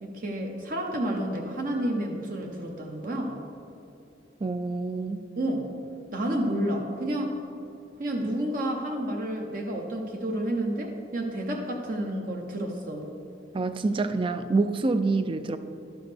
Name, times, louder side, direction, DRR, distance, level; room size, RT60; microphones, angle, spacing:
voice 1, 0.0-3.4 5.4-5.7 6.1-7.4 8.0-13.1, right 1 dB, 45° right, 1 dB, 0.7 m, -30 dB
voice 2, 4.4-5.2 13.5-15.6, right 3 dB, 25° right, 10 dB, 0.3 m, -26 dB
12.0 x 6.1 x 3.4 m, 2.7 s
head